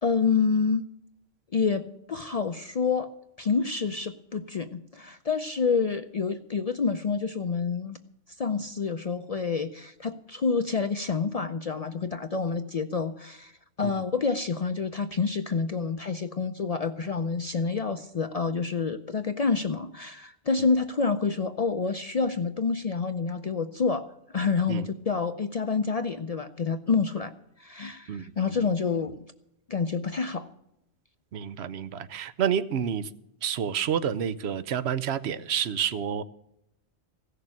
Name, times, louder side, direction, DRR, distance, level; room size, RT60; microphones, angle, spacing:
voice 1, 0.0-0.8 1.5-3.1 3.4-8.0 8.4-13.5 13.8-27.3 27.6-29.2 29.7-30.5, left 5 dB, 45° left, 9 dB, 0.5 m, -28 dB
voice 2, 28.1-28.7 31.3-33.1 33.4-36.2, right 8 dB, 80° right, 14 dB, 1.0 m, -29 dB
16.0 x 6.6 x 8.6 m, 0.81 s
omnidirectional pair, 1.1 m